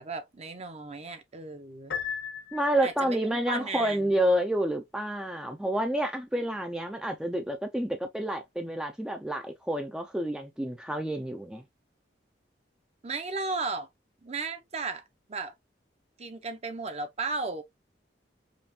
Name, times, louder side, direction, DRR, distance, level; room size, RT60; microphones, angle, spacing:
voice 1, 0.0-2.0 2.8-4.1 13.0-13.9 14.2-15.0 15.3-15.5 16.2-17.6, right 3 dB, 35° right, 0.8 m, -35 dB
Piano, 1.9-3.2, left 7 dB, 70° left, 1.3 m, -36 dB
voice 2, 2.5-11.6, right 1 dB, 5° right, 0.5 m, -29 dB
5.2 x 2.5 x 2.8 m
head